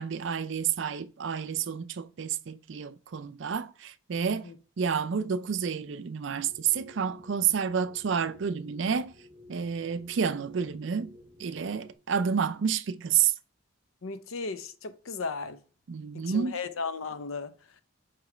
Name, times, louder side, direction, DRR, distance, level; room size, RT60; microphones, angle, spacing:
voice 1, 0.0-4.5 4.8-9.1 9.5-11.1 11.4-13.3 15.9-16.6, right 7 dB, 60° right, 0.4 m, -29 dB
sound 1, 6.4-11.9, left 1 dB, 25° right, 2.1 m, -54 dB
voice 2, 14.0-15.6 16.1-17.8, left 4 dB, 80° left, 0.6 m, -36 dB
7.9 x 3.1 x 4.9 m
head